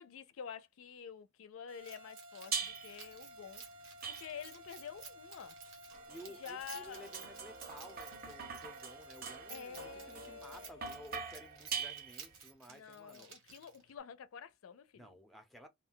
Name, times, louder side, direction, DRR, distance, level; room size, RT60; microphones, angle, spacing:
voice 1, 0.0-3.6 4.0-5.6 6.1-7.1 9.5-11.1 12.7-15.1, left 7 dB, 85° left, 0.4 m, -49 dB
sound 1, 1.7-10.7, equal, 90° right, 0.6 m, -55 dB
Keys jangling, 1.8-14.0, right 6 dB, 70° right, 1.0 m, -55 dB
sound 2, 2.5-3.1 4.0-4.7 5.6-12.5, right 6 dB, 50° right, 0.7 m, -44 dB
voice 2, 6.1-13.3 14.9-15.7, equal, ahead, 0.5 m, -54 dB
2.3 x 2.1 x 3.7 m
head